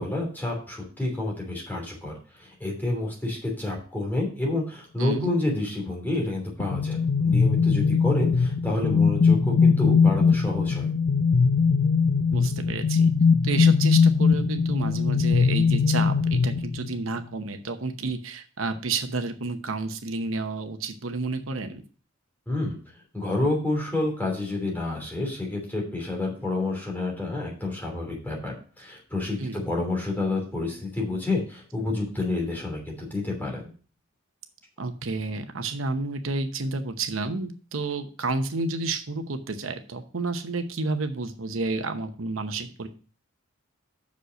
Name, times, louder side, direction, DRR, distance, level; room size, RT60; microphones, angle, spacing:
voice 1, 0.0-10.9 22.5-22.8 23.1-33.7, left 2 dB, 10° left, -2 dB, 3.1 m, -29 dB
voice 2, 5.0-5.3 12.3-13.1 13.4-21.8 29.4-29.7 34.8-42.9, right 3 dB, 85° right, 7 dB, 0.9 m, -30 dB
sound 1, 6.6-17.1, left 5 dB, 75° left, 0.6 m, -21 dB
6.4 x 5.4 x 6.4 m, 0.39 s
head